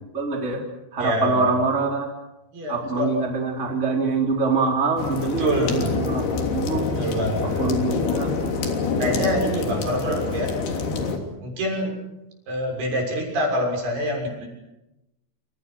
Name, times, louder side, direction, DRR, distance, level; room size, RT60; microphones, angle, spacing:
voice 1, 0.1-0.6 0.9-2.1 2.7-6.2 6.5-6.9 7.4-8.3, right 4 dB, 20° right, 1 dB, 3.9 m, -24 dB
voice 2, 1.0-1.6 2.5-3.1 5.2-6.1 7.0-7.7 9.0-10.5 11.4-12.0 12.5-14.5, equal, 70° right, 1 dB, 8.7 m, -26 dB
sound 1, 5.0-11.2, left 4 dB, 70° left, 5.1 m, -26 dB
29.0 x 28.0 x 6.3 m, 0.94 s
omnidirectional pair, 4.7 m